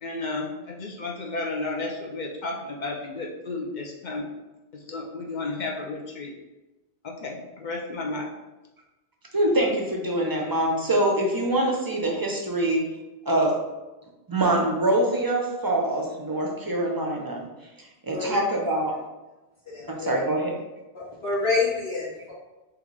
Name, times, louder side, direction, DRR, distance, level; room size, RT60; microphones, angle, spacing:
voice 1, 0.0-4.3 4.9-6.3 7.0-8.3, left 3 dB, 55° left, 0 dB, 0.6 m, -32 dB
voice 2, 9.3-12.9 13.3-13.6 14.3-17.4 17.8-19.0 19.9-20.5, right 1 dB, 30° right, -1 dB, 0.4 m, -24 dB
voice 3, 19.7-20.2 21.0-22.3, left 3 dB, 70° left, -8 dB, 1.8 m, -27 dB
3.8 x 3.0 x 3.1 m, 1.1 s
omnidirectional pair, 1.1 m